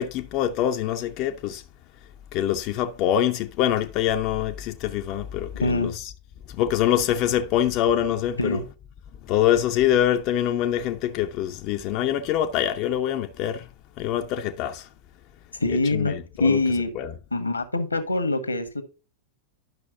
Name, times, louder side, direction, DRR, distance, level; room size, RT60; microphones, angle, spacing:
voice 1, 0.0-1.6 2.3-6.1 6.5-8.6 9.2-13.7 14.0-14.9 15.7-16.6 17.0-17.1, left 11 dB, 40° left, 0.6 m, -24 dB
voice 2, 5.6-5.9 8.4-8.6 15.5-16.9 17.3-18.8, left 2 dB, 80° left, 1.3 m, -24 dB
10.5 x 6.2 x 2.7 m
figure-of-eight pair, 90°, 0 cm